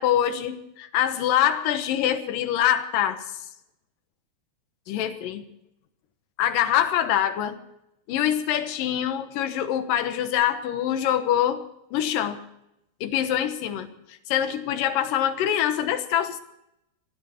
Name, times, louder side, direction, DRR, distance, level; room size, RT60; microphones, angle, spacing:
voice 1, 0.0-3.4 4.9-5.4 6.4-7.6 8.1-11.6 11.9-12.4 13.0-16.4, left 10 dB, 65° left, 9 dB, 2.6 m, -24 dB
20.5 x 13.0 x 4.3 m, 0.83 s
omnidirectional pair, 4.6 m